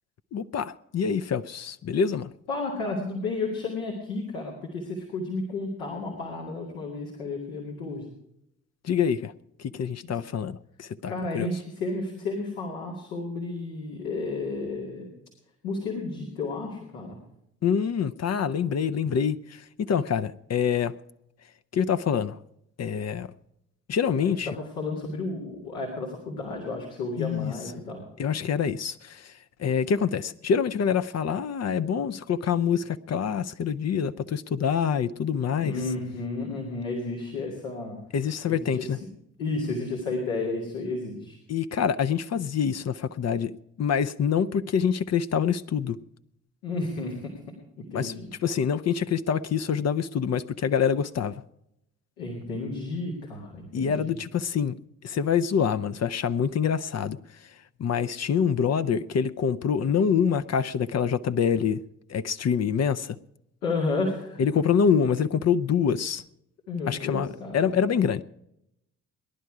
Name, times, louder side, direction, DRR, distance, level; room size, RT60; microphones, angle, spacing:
voice 1, 0.3-2.3 8.8-9.3 9.6-11.5 17.6-20.9 21.7-22.4 22.8-23.3 23.9-24.5 27.2-27.5 28.2-29.3 29.6-35.8 38.1-39.0 41.5-46.0 47.9-48.1 48.4-51.4 53.7-54.8 55.0-57.2 57.8-61.8 62.1-63.2 64.4-66.2 66.9-68.2, left 7 dB, 40° left, 12 dB, 0.6 m, -26 dB
voice 2, 2.5-8.0 10.1-10.2 11.0-15.1 15.6-17.2 24.2-28.0 35.6-38.0 38.5-39.0 39.4-41.4 46.6-47.2 47.9-48.3 52.2-54.0 63.6-64.4 66.7-67.7, left 3 dB, 80° left, -3 dB, 2.3 m, -32 dB
18.5 x 11.0 x 4.8 m, 0.82 s
hypercardioid pair, 45°, 40 cm